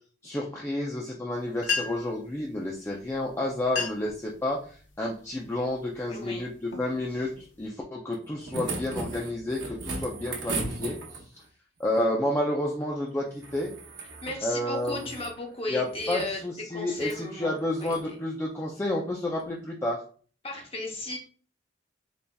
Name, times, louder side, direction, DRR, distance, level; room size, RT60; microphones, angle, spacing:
voice 1, 0.2-11.0 11.8-13.7 14.4-15.0 15.7-20.0, left 1 dB, 15° left, -3 dB, 0.4 m, -30 dB
sound 1, 1.3-1.4 1.6-2.2 3.1-3.2 3.6-4.2 4.7-5.0 5.6-5.9 6.4-7.7, left 5 dB, 70° left, 0.8 m, -33 dB
voice 2, 6.1-6.5 7.1-7.2 10.0-10.3 14.2-16.4 16.7-17.5 17.8-18.2 20.4-21.2, left 2 dB, 30° left, 1 dB, 0.8 m, -35 dB
sound 2, 8.1-11.4 13.4-14.4 14.7-15.4 15.9-16.3 17.0-17.2 17.8-18.0 19.4-19.5, right 3 dB, 65° right, 0.9 m, -37 dB
4.0 x 3.3 x 2.2 m, 0.42 s
head